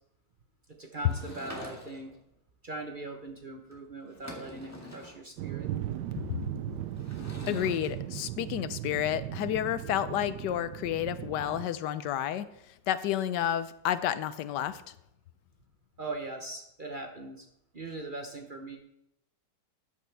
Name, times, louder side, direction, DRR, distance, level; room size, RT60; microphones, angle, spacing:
voice 1, 0.8-2.2 2.6-5.7 16.0-17.5 17.7-18.8, right 2 dB, 40° right, 3 dB, 0.8 m, -40 dB
Sliding door / Wood, 1.0-2.2 3.7-3.8 4.1-5.2 7.0-7.9, equal, 10° left, 1.7 m, -45 dB
sound 1, 5.4-11.7, right 13 dB, 85° right, 1.2 m, -37 dB
voice 2, 7.5-12.5 12.9-14.8, left 11 dB, 80° left, 14 dB, 1.2 m, -30 dB
13.5 x 8.7 x 3.4 m, 0.81 s
omnidirectional pair, 1.8 m